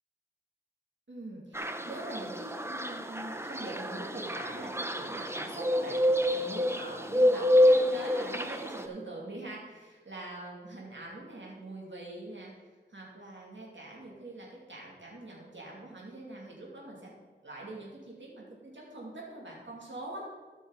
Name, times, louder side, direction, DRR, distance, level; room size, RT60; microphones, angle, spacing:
voice 1, 1.1-12.5 12.9-17.1 17.4-20.3, right 2 dB, 65° right, -4 dB, 2.7 m, -43 dB
sound 1, 1.6-8.9, left 1 dB, 10° right, 0.7 m, -28 dB
14.0 x 6.2 x 4.1 m, 1.3 s
wide cardioid pair, 55°, 20 cm